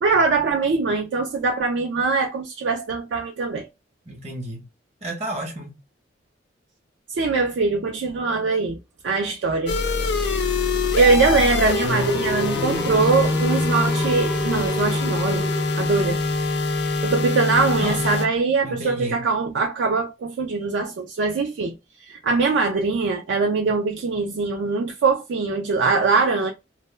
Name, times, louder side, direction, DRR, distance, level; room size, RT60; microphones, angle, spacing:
voice 1, 0.0-3.7 7.1-8.8 9.0-10.4 11.0-15.5 15.8-16.2 17.0-21.7 22.0-26.5, right 4 dB, 70° right, 0.3 m, -22 dB
voice 2, 4.1-4.6 5.0-5.7 17.8-18.0 18.6-19.2, right 1 dB, 35° right, 0.7 m, -31 dB
sound 1, 9.7-18.3, left 3 dB, 60° left, 0.5 m, -24 dB
sound 2, 10.4-16.3, right 1 dB, ahead, 0.4 m, -32 dB
2.1 x 2.0 x 3.1 m
head